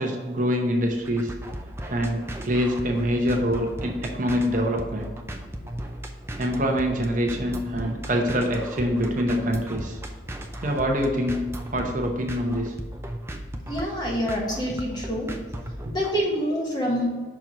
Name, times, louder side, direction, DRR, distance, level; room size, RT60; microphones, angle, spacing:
voice 1, 0.0-1.3 1.9-5.1 6.4-10.0 10.6-11.4 11.7-12.7 15.8-15.9, equal, 40° right, 1 dB, 0.8 m, -25 dB
sound 1, 0.8-16.2, right 1 dB, 15° right, 0.5 m, -36 dB
voice 2, 13.7-15.3 15.9-17.1, equal, 20° left, -2 dB, 1.3 m, -26 dB
6.0 x 4.5 x 5.2 m, 1.5 s
head